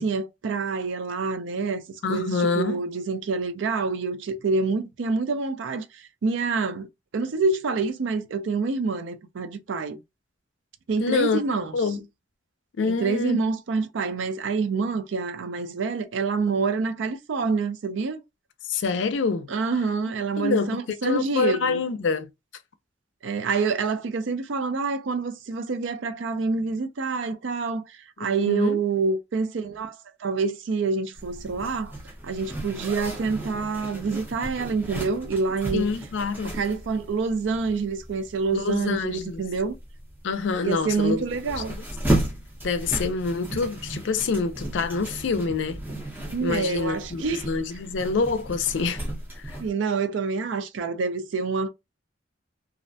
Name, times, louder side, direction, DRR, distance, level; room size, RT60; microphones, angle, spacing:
voice 1, 0.0-1.8 2.1-6.9 7.1-10.0 10.9-11.7 12.8-18.2 19.5-21.8 23.2-31.9 32.2-35.9 36.6-39.8 40.6-41.7 46.3-47.5 49.6-51.7, right 4 dB, 70° right, 0.4 m, -27 dB
voice 2, 2.0-2.8 11.0-11.4 11.7-12.0 12.8-13.4 18.6-19.5 20.4-22.3 28.4-28.8 35.7-36.6 38.5-39.4 40.2-41.2 41.7-41.8 42.6-45.8 46.4-49.0 49.4-49.6, left 4 dB, 65° left, 0.4 m, -26 dB
Zipper (clothing), 31.2-49.7, right 1 dB, 10° right, 0.6 m, -34 dB
2.4 x 2.1 x 2.6 m
head